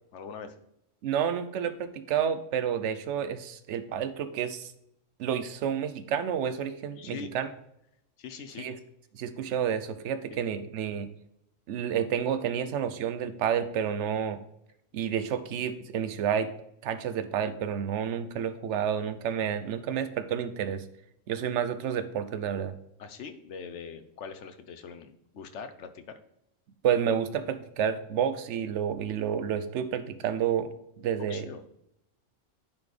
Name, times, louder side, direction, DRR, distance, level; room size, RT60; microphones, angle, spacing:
voice 1, 0.1-0.6 7.0-7.3 8.2-8.7 10.3-10.4 23.0-26.1 31.2-31.6, left 6 dB, 65° left, 9 dB, 1.0 m, -42 dB
voice 2, 1.0-4.7 5.2-7.5 8.6-8.8 9.1-11.1 11.7-14.4 14.9-16.5 16.8-20.8 21.3-22.7 26.8-30.7 31.0-31.5, right 8 dB, 70° right, 11 dB, 0.9 m, -30 dB
10.0 x 4.3 x 3.3 m, 0.78 s
omnidirectional pair, 1.3 m